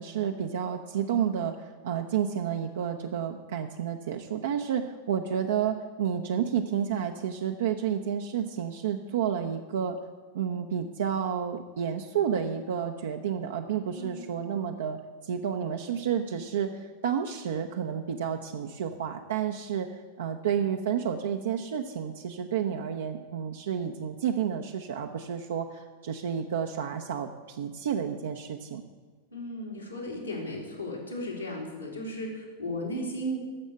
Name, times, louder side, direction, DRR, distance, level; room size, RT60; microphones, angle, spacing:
voice 1, 0.0-10.0 10.3-28.8, right 8 dB, 60° right, 3 dB, 0.6 m, -30 dB
voice 2, 13.9-14.3 29.3-33.4, equal, 85° left, -3 dB, 3.1 m, -35 dB
12.0 x 7.2 x 7.9 m, 1.4 s
figure-of-eight pair, 90°, 0 cm